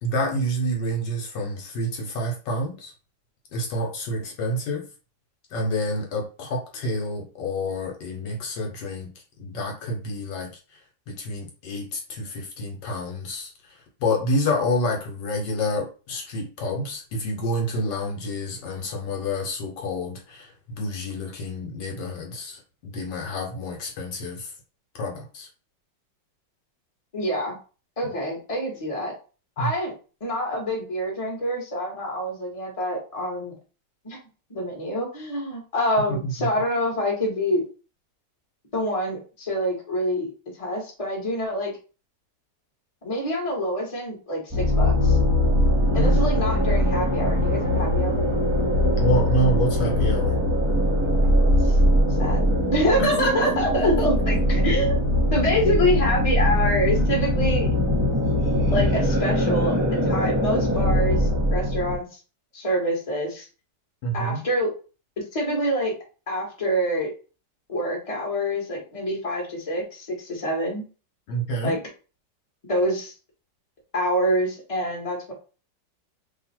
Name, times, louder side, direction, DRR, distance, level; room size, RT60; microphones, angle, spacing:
voice 1, 0.0-2.9 3.5-4.8 5.5-9.1 9.4-10.5 11.1-24.5 24.9-25.5 29.6-29.7 36.1-36.3 46.0-46.3 49.0-50.4 53.0-53.1 64.0-64.4 71.3-71.8, equal, 75° left, 0 dB, 1.6 m, -28 dB
voice 2, 27.1-27.6 28.0-29.1 29.6-29.9 30.2-33.5 34.0-34.2 34.5-37.6 38.7-40.3 40.6-41.7 43.0-45.2 45.9-48.3 51.2-51.8 52.2-55.0 55.3-57.7 58.7-59.8 60.0-62.2 62.5-63.5 64.1-64.7 65.3-65.9 66.3-67.1 67.7-70.8 71.6-71.8 72.6-73.1 73.9-75.3, equal, 20° left, -2 dB, 1.3 m, -26 dB
sound 1, 44.5-61.9, equal, 15° right, 1.0 m, -21 dB
3.1 x 2.6 x 4.3 m, 0.35 s
omnidirectional pair, 1.9 m